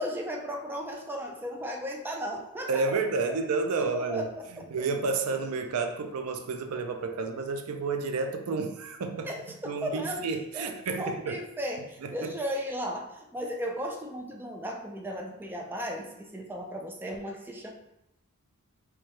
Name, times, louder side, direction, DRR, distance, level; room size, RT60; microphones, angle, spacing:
voice 1, 0.0-2.8 3.3-3.4 3.8-4.3 9.2-10.2 10.5-17.7, equal, 10° right, 0 dB, 0.3 m, -35 dB
voice 2, 2.7-9.3 9.6-11.4 12.0-12.3, right 4 dB, 75° right, 6 dB, 0.4 m, -31 dB
4.4 x 2.3 x 3.1 m, 0.85 s
head